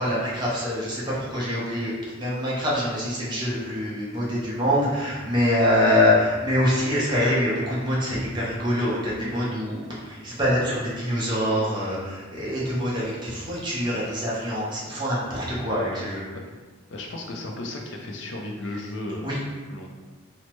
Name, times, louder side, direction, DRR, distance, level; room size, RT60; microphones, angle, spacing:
voice 1, 0.0-16.2 19.2-19.4, left 1 dB, 20° right, -7 dB, 0.7 m, -25 dB
voice 2, 16.9-19.4 19.7-19.9, left 1 dB, 60° left, 1 dB, 0.4 m, -34 dB
3.1 x 2.0 x 3.0 m, 1.4 s
head